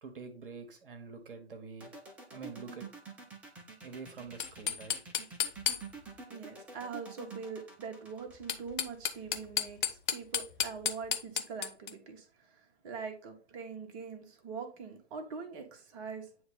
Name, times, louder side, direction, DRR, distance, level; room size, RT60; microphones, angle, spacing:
voice 1, 0.0-1.9 2.3-2.9 3.8-5.0, right 5 dB, 55° right, 1.4 m, -46 dB
sound 1, 1.8-9.6, right 4 dB, 5° right, 0.4 m, -48 dB
sound 2, 4.3-6.2 8.3-11.9, left 9 dB, 50° left, 0.9 m, -34 dB
voice 2, 6.3-12.3 12.6-16.3, right 5 dB, 30° right, 1.3 m, -43 dB
9.3 x 3.2 x 4.0 m
figure-of-eight pair, 115°, 33 cm